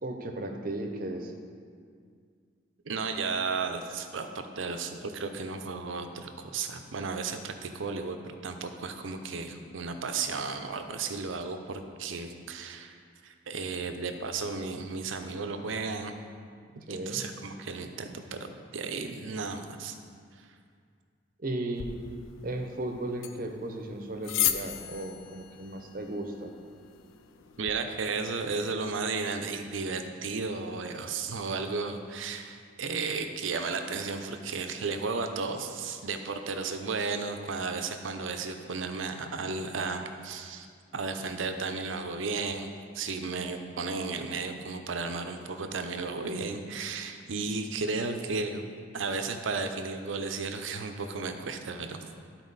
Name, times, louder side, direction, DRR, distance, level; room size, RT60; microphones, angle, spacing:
voice 1, 0.0-1.3 16.9-17.2 21.4-21.9 22.4-26.5, right 1 dB, 45° right, 4 dB, 0.7 m, -35 dB
voice 2, 2.8-8.2 8.4-12.9 13.2-16.1 16.9-20.0 27.6-40.7 40.9-42.7 42.9-48.6 48.9-52.0, right 4 dB, 85° right, 6 dB, 0.6 m, -34 dB
sound 1, 21.7-27.8, left 10 dB, 90° left, 0.4 m, -36 dB
11.5 x 4.4 x 4.0 m, 2.1 s
head